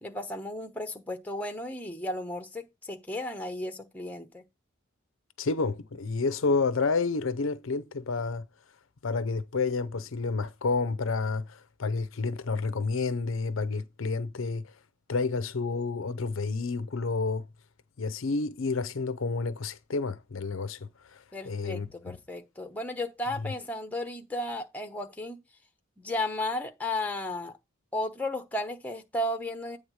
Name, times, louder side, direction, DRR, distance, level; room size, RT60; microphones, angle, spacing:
voice 1, 0.0-4.4 21.3-25.4 26.0-27.5 27.9-29.8, left 1 dB, 10° left, 1.0 m, -34 dB
voice 2, 5.4-8.5 9.0-14.7 15.1-17.4 18.0-22.2 23.4-23.5, left 4 dB, 65° left, 0.6 m, -30 dB
8.7 x 3.5 x 6.3 m
head